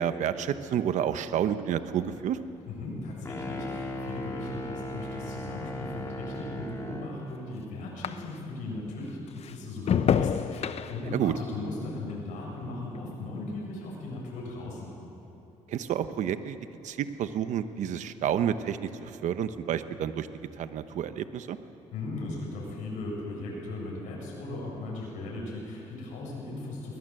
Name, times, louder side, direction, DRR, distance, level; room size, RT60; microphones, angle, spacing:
voice 1, 0.0-2.4 11.1-11.3 15.7-16.6 16.8-20.3 20.6-21.6, right 9 dB, 70° right, 11 dB, 1.1 m, -29 dB
sound 1, 1.9-8.7 9.0-13.6 13.9-14.4, left 8 dB, 55° left, 0.9 m, -34 dB
voice 2, 2.6-14.9 21.9-27.0, left 2 dB, 90° left, -3 dB, 7.8 m, -37 dB
sound 2, 3.2-7.2, equal, 20° left, 3.8 m, -37 dB
22.0 x 20.5 x 7.8 m, 2.9 s
cardioid pair, 90°, 13 cm